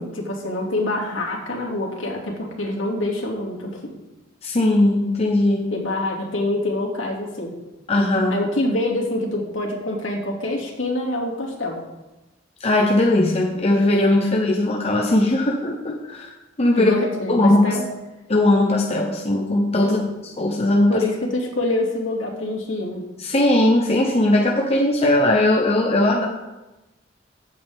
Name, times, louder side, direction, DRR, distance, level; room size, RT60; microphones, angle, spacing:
voice 1, 0.0-4.0 5.7-7.5 8.3-11.8 16.8-17.8 19.8-20.1 20.9-23.0, left 1 dB, 85° left, -2 dB, 2.6 m, -25 dB
voice 2, 4.4-5.7 7.9-8.4 12.6-16.9 17.3-17.6 18.3-20.0 20.2-21.0 23.2-26.3, left 1 dB, 35° left, 1 dB, 1.0 m, -19 dB
15.0 x 8.1 x 3.7 m, 1.0 s
head